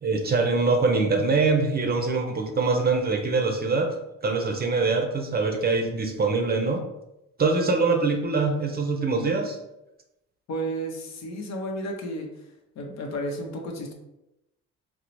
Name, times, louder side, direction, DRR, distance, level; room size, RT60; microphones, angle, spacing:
voice 1, 0.0-3.9 4.2-6.8 7.4-9.6, right 3 dB, 30° right, 3 dB, 0.5 m, -23 dB
voice 2, 10.5-12.3 12.8-13.9, right 1 dB, 65° left, 2 dB, 0.7 m, -32 dB
3.8 x 2.0 x 3.0 m, 0.91 s
cardioid pair, 90°, 30 cm